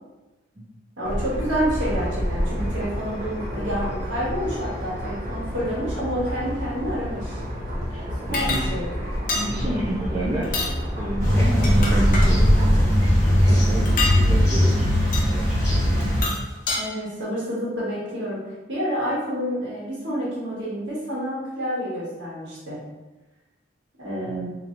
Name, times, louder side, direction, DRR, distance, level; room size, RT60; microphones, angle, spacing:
sound 1, 1.0-12.8, equal, 50° right, 0.9 m, -27 dB
voice 1, 1.0-7.4 8.3-8.8 16.7-22.8 24.0-24.5, equal, 80° right, -7 dB, 1.4 m, -29 dB
sound 2, 8.3-8.6 9.3-9.5 10.4-10.7 11.4-12.3 13.9-14.2 15.1-15.3 16.0-16.8, left 3 dB, 45° left, 0.6 m, -27 dB
voice 2, 8.3-8.7 9.3-10.5 10.9-16.3 24.3-24.4, right 1 dB, 25° right, -7 dB, 0.5 m, -30 dB
sound 3, 11.2-16.2, equal, 15° left, 1.0 m, -19 dB
4.2 x 3.0 x 2.5 m, 1.1 s
head